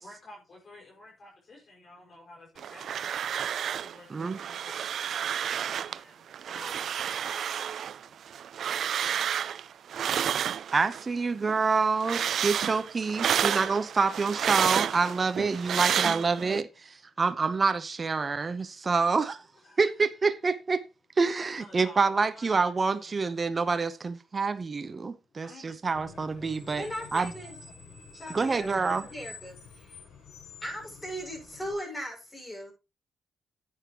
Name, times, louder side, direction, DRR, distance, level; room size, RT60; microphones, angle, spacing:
voice 1, 0.0-3.1 3.8-7.4 7.6-10.7 11.9-12.0 17.1-17.2 18.3-18.8 19.6-19.8 21.4-22.5 23.0-23.7 25.3-26.1 28.1-29.1, left 1 dB, 50° left, 5.4 m, -53 dB
sound 1, 2.6-4.0 4.2-6.0 6.3-11.1 11.4-16.6, right 9 dB, 65° right, 0.4 m, -30 dB
voice 2, 10.7-19.4 19.8-20.8 21.2-26.8 27.1-27.3 28.3-29.0, right 4 dB, 35° right, 0.8 m, -27 dB
Screech, 25.9-31.7, left 4 dB, 80° left, 7.0 m, -48 dB
voice 3, 26.8-27.6 28.1-30.0 30.6-32.7, equal, 15° left, 6.6 m, -38 dB
10.5 x 9.2 x 3.0 m
cardioid pair, 90°, 0 cm